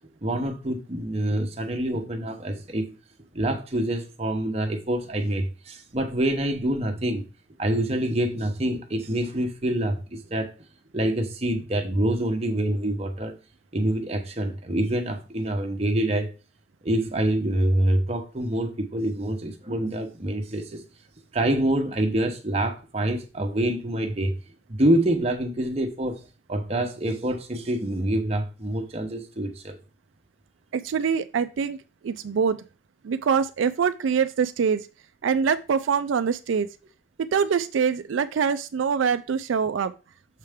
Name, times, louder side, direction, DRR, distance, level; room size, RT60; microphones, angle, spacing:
voice 1, 0.2-2.9 3.3-7.2 7.6-10.5 10.9-13.3 13.7-16.3 16.8-20.8 21.3-24.4 24.7-26.2 26.5-29.8, right 1 dB, 30° right, 0.9 m, -26 dB
voice 2, 30.7-31.8 32.0-32.6 33.0-34.9 35.2-36.7 37.2-39.9, right 6 dB, 85° right, 0.4 m, -24 dB
6.6 x 4.8 x 3.6 m
head